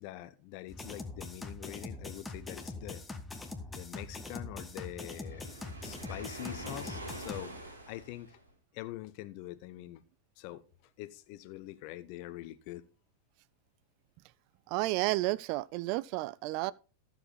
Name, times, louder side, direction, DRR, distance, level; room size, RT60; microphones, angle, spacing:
voice 1, 0.0-3.0 3.7-7.5 7.9-8.3 8.7-10.0 10.4-10.6 11.0-12.8, left 15 dB, 45° left, 0.9 m, -44 dB
sound 1, 0.7-7.4, left 3 dB, 10° left, 1.7 m, -43 dB
Waves surf, 5.0-8.5, right 1 dB, 80° right, 4.5 m, -45 dB
voice 2, 14.7-16.7, right 18 dB, 45° right, 0.4 m, -31 dB
14.0 x 7.4 x 4.1 m
figure-of-eight pair, 90°, 0 cm